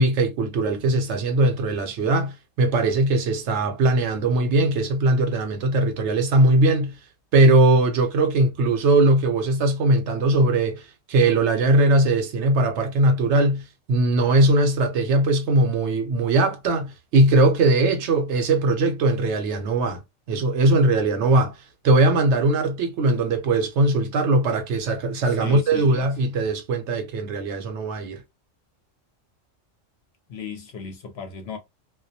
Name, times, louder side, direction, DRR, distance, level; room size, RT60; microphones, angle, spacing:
voice 1, 0.0-7.0 7.3-20.0 20.3-21.6 21.8-28.2, right 2 dB, 70° right, 0.8 m, -20 dB
voice 2, 25.4-26.0 30.3-31.6, left 6 dB, 65° left, 0.7 m, -36 dB
2.2 x 2.1 x 2.6 m
omnidirectional pair, 1.3 m